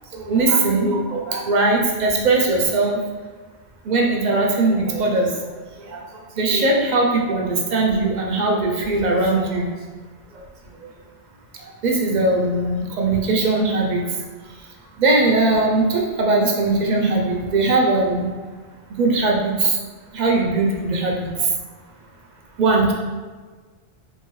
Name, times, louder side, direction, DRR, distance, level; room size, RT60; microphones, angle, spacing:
voice 1, 0.1-3.0 3.9-5.3 5.9-6.0 6.4-9.7 11.8-14.0 15.0-18.3 19.0-19.8 20.1-21.3 22.6-22.9, right 2 dB, 55° right, -1 dB, 0.5 m, -20 dB
2.7 x 2.6 x 3.0 m, 1.4 s
omnidirectional pair, 1.1 m